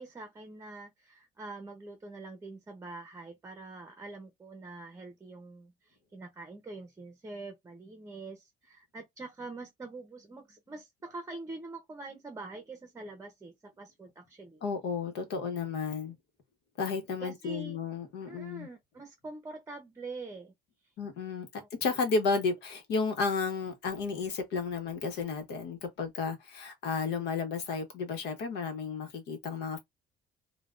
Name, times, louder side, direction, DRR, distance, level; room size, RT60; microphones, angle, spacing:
voice 1, 0.0-14.6 17.2-17.8 18.3-20.5 21.6-21.7, right 3 dB, 15° right, 0.7 m, -45 dB
voice 2, 14.6-16.1 16.8-18.7 21.0-21.5 21.8-29.8, left 4 dB, 80° left, 1.0 m, -32 dB
3.2 x 2.2 x 2.4 m
cardioid pair, 110°, 17 cm